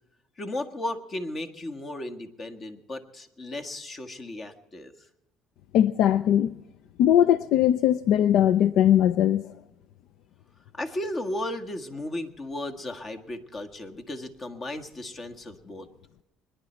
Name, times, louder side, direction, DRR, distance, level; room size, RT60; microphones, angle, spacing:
voice 1, 0.4-4.9 10.7-15.9, left 1 dB, 35° left, 1.6 m, -35 dB
voice 2, 5.7-6.6 7.0-9.5, left 10 dB, 70° left, 0.4 m, -20 dB
24.0 x 10.5 x 4.4 m
supercardioid pair, 85°, 0 cm